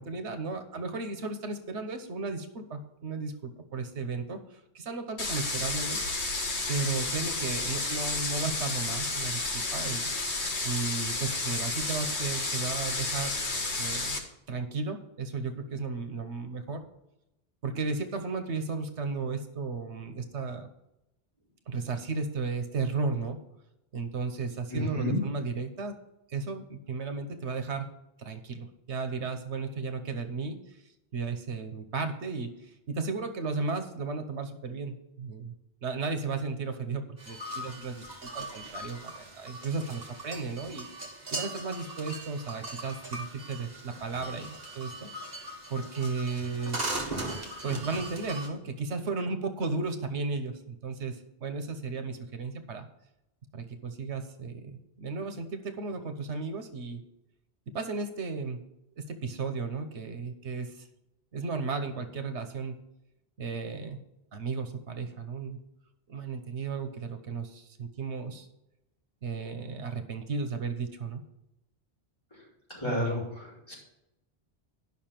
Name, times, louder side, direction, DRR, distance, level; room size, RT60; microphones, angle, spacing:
voice 1, 0.0-6.0 6.7-13.4 13.8-14.2 14.5-16.8 17.6-20.7 21.7-23.4 23.9-26.0 26.3-27.9 28.2-30.8 31.1-35.5 35.8-40.9 41.3-45.1 45.7-46.8 47.6-52.9 53.5-57.0 57.7-58.6 59.0-60.9 61.3-62.8 63.4-64.0 64.3-65.6 66.1-68.5 69.2-71.2, right 4 dB, 85° right, 7 dB, 1.3 m, -34 dB
sound 1, 5.2-14.2, left 3 dB, 85° left, 1.9 m, -31 dB
voice 2, 24.7-25.2 72.7-73.8, equal, 25° left, -6 dB, 4.6 m, -31 dB
sound 2, 37.2-48.5, right 2 dB, 40° right, 2.0 m, -39 dB
11.0 x 5.9 x 5.9 m, 0.88 s
omnidirectional pair, 1.1 m